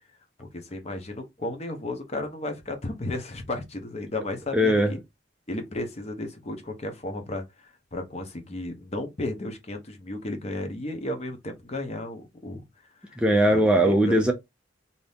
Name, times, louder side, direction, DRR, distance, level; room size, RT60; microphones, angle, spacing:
voice 1, 0.4-5.0 5.5-12.6 13.0-13.2 13.5-14.2, left 2 dB, 35° left, 0.7 m, -34 dB
voice 2, 4.5-4.9 13.2-14.3, equal, 5° right, 0.4 m, -20 dB
2.7 x 2.6 x 3.4 m
head